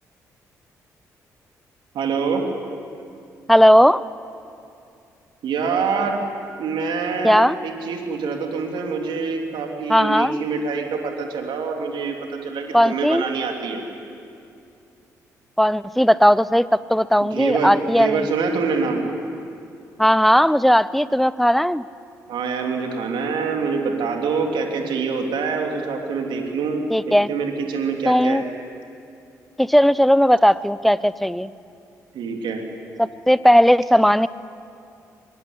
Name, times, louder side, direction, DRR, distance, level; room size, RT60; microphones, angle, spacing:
voice 1, 1.9-2.4 5.4-6.2 6.6-13.8 17.2-19.0 22.3-28.4 32.1-32.6, right 5 dB, 65° right, 2 dB, 3.3 m, -25 dB
voice 2, 3.5-4.0 7.2-7.6 9.9-10.4 12.7-13.2 15.6-18.3 20.0-21.8 26.9-27.3 28.1-28.4 29.6-31.5 33.0-34.3, equal, ahead, 18 dB, 0.8 m, -17 dB
23.0 x 20.0 x 9.8 m, 2.5 s
hypercardioid pair, 40°, 9 cm